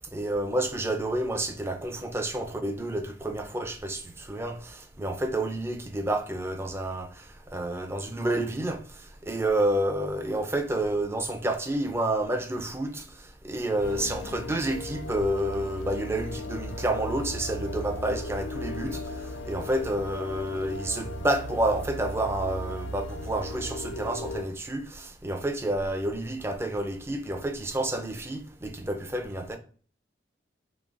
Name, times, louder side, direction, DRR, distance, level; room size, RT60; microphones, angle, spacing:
voice 1, 0.1-29.6, right 1 dB, 15° right, 0.4 m, -29 dB
sound 1, 13.7-24.4, left 1 dB, 75° left, 0.4 m, -37 dB
3.8 x 3.1 x 2.4 m
head